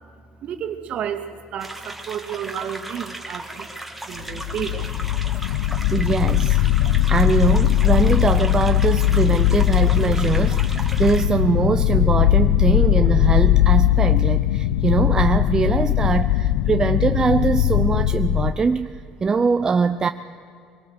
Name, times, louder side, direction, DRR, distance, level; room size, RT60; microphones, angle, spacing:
voice 1, 0.4-3.7 4.0-5.1 5.5-5.7 6.8-6.9, right 9 dB, 50° right, 5 dB, 2.2 m, -32 dB
sound 1, 1.6-11.3, right 1 dB, 5° right, 2.1 m, -36 dB
sound 2, 4.2-18.5, left 13 dB, 90° left, 0.7 m, -19 dB
voice 2, 5.9-6.6 7.1-20.1, right 5 dB, 25° right, 8 dB, 0.6 m, -22 dB
23.5 x 18.5 x 8.1 m, 2.4 s
cardioid pair, 115°, 3 cm